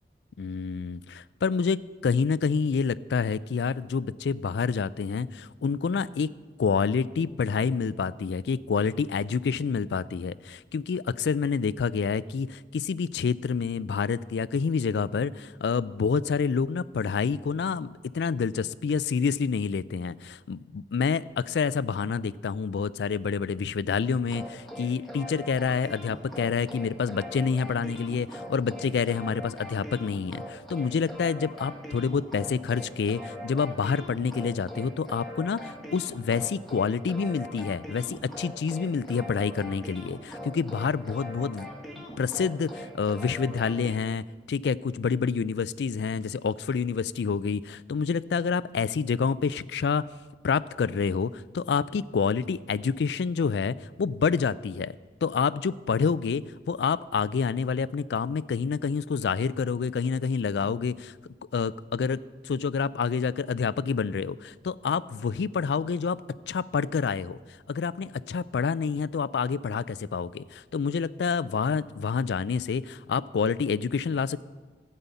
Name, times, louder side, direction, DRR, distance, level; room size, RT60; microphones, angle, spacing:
voice 1, 0.4-6.3 6.6-41.7 42.0-50.0 50.4-54.9 55.2-61.1 61.5-66.2 66.5-67.4 67.7-74.4, left 5 dB, 80° left, 18 dB, 0.4 m, -28 dB
sound 1, 24.3-43.9, equal, ahead, 1.3 m, -41 dB
15.0 x 5.5 x 8.2 m, 1.4 s
head